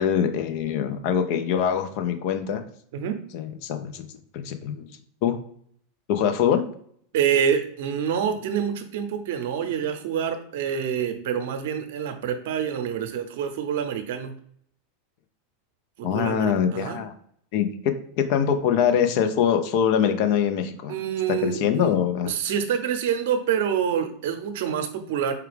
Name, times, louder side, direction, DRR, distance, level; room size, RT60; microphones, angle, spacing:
voice 1, 0.0-2.6 3.3-4.1 4.3-4.9 5.2-5.4 6.1-6.6 16.0-17.1 17.5-20.9 21.4-22.3, left 8 dB, 55° left, 7 dB, 0.6 m, -23 dB
voice 2, 7.1-14.3 16.0-17.0 20.9-21.9 22.3-25.3, right 8 dB, 65° right, 7 dB, 0.7 m, -26 dB
4.6 x 2.3 x 3.4 m, 0.64 s
hypercardioid pair, 95°, 0 cm